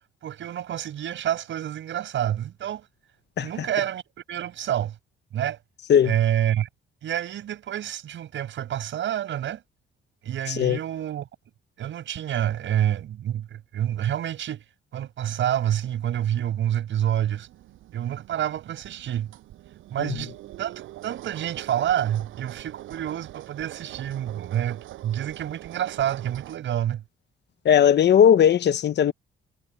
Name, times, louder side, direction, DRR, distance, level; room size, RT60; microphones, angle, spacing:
voice 1, 0.2-2.9 3.4-4.0 4.3-4.9 5.3-5.6 6.0-6.7 7.0-9.6 10.2-11.3 11.8-14.6 14.9-17.5 17.9-19.3 19.9-20.3 20.6-27.0, right 11 dB, 70° right, 6.3 m, -28 dB
sound 1, 17.3-26.6, right 15 dB, 90° right, 6.5 m, -43 dB
voice 2, 27.6-29.1, left 9 dB, 60° left, 1.2 m, -18 dB
cardioid pair, 90°, 20 cm